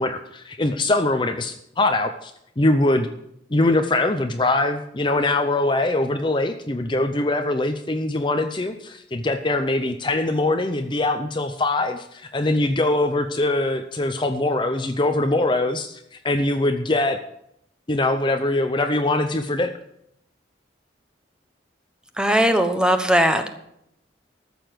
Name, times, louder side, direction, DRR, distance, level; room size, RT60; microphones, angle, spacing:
voice 1, 0.0-3.1 3.5-17.2 17.9-19.7, left 2 dB, 25° left, 7 dB, 0.7 m, -22 dB
voice 2, 22.2-23.6, equal, 5° right, 7 dB, 1.1 m, -19 dB
14.0 x 7.0 x 7.7 m, 0.75 s
head